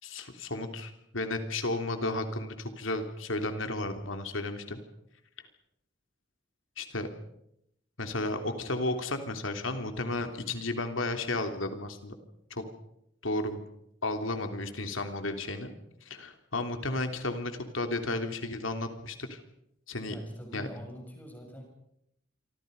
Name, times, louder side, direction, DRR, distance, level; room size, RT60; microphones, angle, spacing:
voice 1, 0.0-4.8 6.8-7.1 8.0-12.1 12.5-12.6 13.2-13.6 14.0-15.7 16.0-19.4 19.9-20.1 20.5-20.7, left 2 dB, 90° left, 6 dB, 3.3 m, -33 dB
voice 2, 20.1-21.6, equal, 10° left, 1 dB, 7.4 m, -44 dB
27.5 x 25.0 x 5.4 m, 0.78 s
head